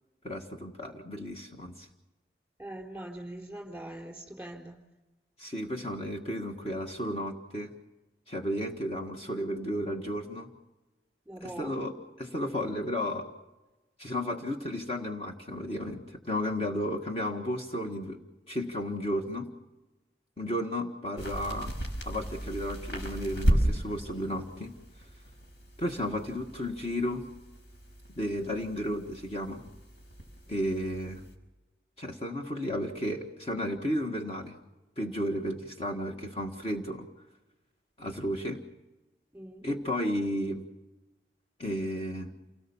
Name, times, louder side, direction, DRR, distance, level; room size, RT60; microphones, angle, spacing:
voice 1, 0.2-1.9 5.4-7.7 8.3-10.5 11.6-11.9 12.2-13.3 14.0-18.2 18.5-19.5 20.4-21.7 22.1-24.7 25.8-27.3 28.2-29.6 30.5-31.2 32.0-34.6 35.0-37.1 38.0-38.6 39.6-40.6 41.6-42.3, equal, 35° left, 1 dB, 1.7 m, -33 dB
voice 2, 2.6-4.8 11.3-11.8 39.3-39.7, right 1 dB, 5° right, 0 dB, 4.1 m, -42 dB
sound 1, 21.2-31.3, right 1 dB, 85° left, 5.3 m, -34 dB
29.0 x 18.5 x 7.2 m, 1.1 s
head